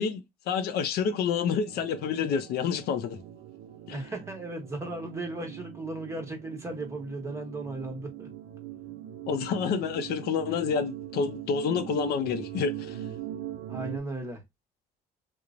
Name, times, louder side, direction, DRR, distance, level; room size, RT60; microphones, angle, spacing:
voice 1, 0.0-3.2 3.9-4.0 9.3-13.0, left 6 dB, 70° left, 0.5 m, -28 dB
sound 1, 1.7-14.0, right 12 dB, 75° right, 0.4 m, -41 dB
voice 2, 3.9-8.3 13.7-14.4, right 2 dB, 15° right, 1.0 m, -36 dB
3.0 x 2.0 x 2.4 m
cardioid pair, 110°, 17 cm